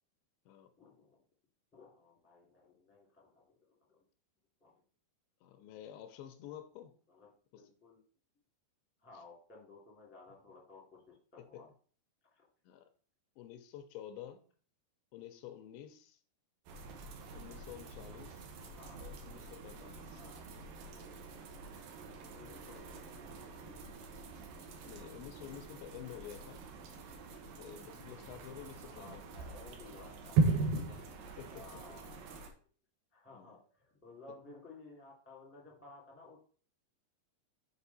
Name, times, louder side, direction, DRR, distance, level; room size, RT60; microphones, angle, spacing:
voice 1, 0.8-1.2 1.7-4.0 4.6-4.7 7.1-8.0 9.0-11.7 12.3-12.4 18.8-19.1 20.2-20.4 22.3-24.2 25.0-25.3 28.9-30.5 31.2-32.5 33.1-36.4, left 3 dB, 5° left, 1.3 m, -56 dB
voice 2, 5.4-7.0 7.5-7.6 11.4-11.6 12.6-12.9 13.4-14.4 15.1-16.2 17.3-18.6 18.9-20.2 24.8-26.6 27.6-29.3 30.9-31.1 31.4-31.6 33.3-33.6, left 11 dB, 85° left, 3.0 m, -50 dB
sound 1, 16.7-32.5, right 4 dB, 70° right, 2.3 m, -40 dB
7.1 x 5.0 x 4.1 m
omnidirectional pair, 5.1 m